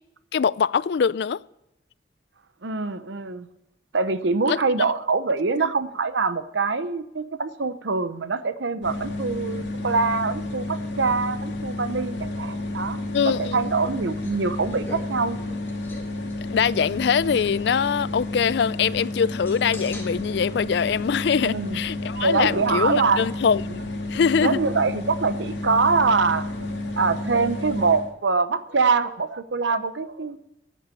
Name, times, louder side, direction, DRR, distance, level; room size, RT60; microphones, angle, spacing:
voice 1, 0.3-1.4 4.5-4.9 5.6-5.7 13.1-13.7 16.5-23.6 24.1-24.6, left 6 dB, 65° left, 0.4 m, -23 dB
voice 2, 2.6-3.5 3.9-15.4 21.4-21.8 22.1-23.2 23.7-23.8 24.4-26.7 27.0-30.4, right 4 dB, 80° right, 0.8 m, -24 dB
sound 1, 8.8-28.1, left 2 dB, 80° left, 1.9 m, -31 dB
sound 2, 13.3-21.7, left 2 dB, 15° left, 2.1 m, -46 dB
10.5 x 8.6 x 8.4 m
head